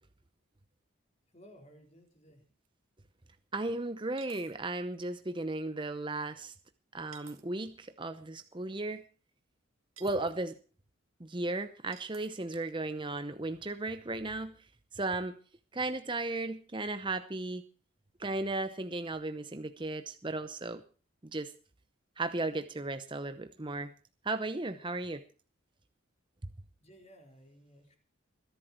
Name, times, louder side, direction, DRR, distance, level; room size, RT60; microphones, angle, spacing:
voice 1, 1.3-2.4 26.8-28.0, equal, 30° left, 4 dB, 4.2 m, -57 dB
sound 1, 2.1-2.2 2.6-2.7 4.2-4.6 7.1-7.4 10.0-10.3 11.9-12.4, right 9 dB, 85° right, 2.4 m, -54 dB
voice 2, 3.5-6.5 6.9-9.0 10.0-10.6 11.2-14.6 14.9-15.4 15.7-17.6 18.2-20.8 21.3-21.5 22.2-23.9 24.2-25.2, right 2 dB, 25° right, 9 dB, 0.8 m, -35 dB
21.5 x 11.5 x 4.4 m, 0.39 s
head